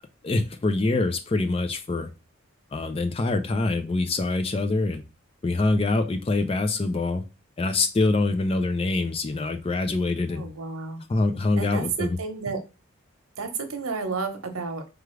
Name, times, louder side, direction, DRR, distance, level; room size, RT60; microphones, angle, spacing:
voice 1, 0.2-2.1 2.7-5.0 5.4-7.2 7.6-10.5 11.1-12.2, left 2 dB, 25° left, 0.4 m, -25 dB
voice 2, 10.3-11.0 11.6-12.6 13.4-14.9, right 4 dB, 90° right, 0.9 m, -31 dB
4.8 x 2.4 x 3.1 m
head